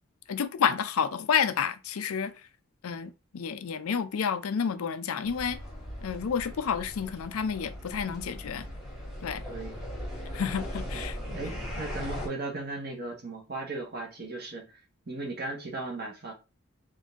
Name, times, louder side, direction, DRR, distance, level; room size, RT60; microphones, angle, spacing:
voice 1, 0.3-2.3 2.8-5.6 6.0-8.7 9.2-9.4 10.3-11.2, left 7 dB, 90° left, 0.4 m, -30 dB
sound 1, 5.2-12.3, equal, ahead, 1.4 m, -39 dB
voice 2, 11.3-16.3, right 2 dB, 45° right, 1.2 m, -37 dB
3.8 x 2.6 x 3.5 m
head